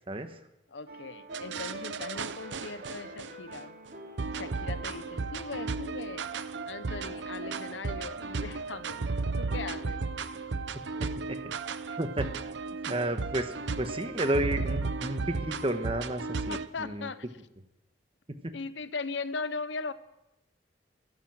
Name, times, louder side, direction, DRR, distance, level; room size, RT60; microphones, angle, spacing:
voice 1, 0.1-0.4 11.0-11.4 12.0-12.3 12.8-17.1 18.3-18.5, right 1 dB, 30° right, 1.2 m, -32 dB
voice 2, 0.7-3.8 4.3-6.3 6.7-9.0 9.4-10.1 11.9-12.0 16.5-17.2 18.5-19.9, left 4 dB, 85° left, 0.8 m, -39 dB
sound 1, 0.9-8.9, right 1 dB, 50° right, 3.1 m, -48 dB
sound 2, 1.3-3.6 4.2-16.7, right 4 dB, 80° right, 0.7 m, -34 dB
15.0 x 12.5 x 7.5 m
head